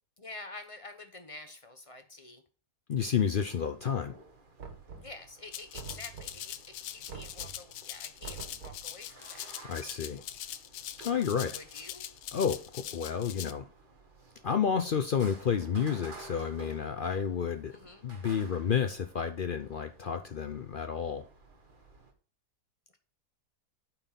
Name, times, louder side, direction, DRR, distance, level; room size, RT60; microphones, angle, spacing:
voice 1, 0.2-2.4 5.0-9.5 11.5-12.0 17.7-18.0, left 2 dB, 30° left, 7 dB, 0.7 m, -48 dB
voice 2, 2.9-4.2 9.7-10.2 11.0-11.6 12.3-13.7 14.4-17.7 18.0-21.3, left 7 dB, 70° left, 8 dB, 0.5 m, -30 dB
sound 1, 3.0-22.1, right 3 dB, 35° right, 1.4 m, -54 dB
Knock, 4.6-5.3 5.7-6.5 7.1-7.7 8.2-8.9, right 5 dB, 75° right, 1.9 m, -45 dB
Rattle (instrument), 5.5-13.5, left 12 dB, 85° left, 1.2 m, -42 dB
8.9 x 4.5 x 5.7 m, 0.38 s
omnidirectional pair, 1.7 m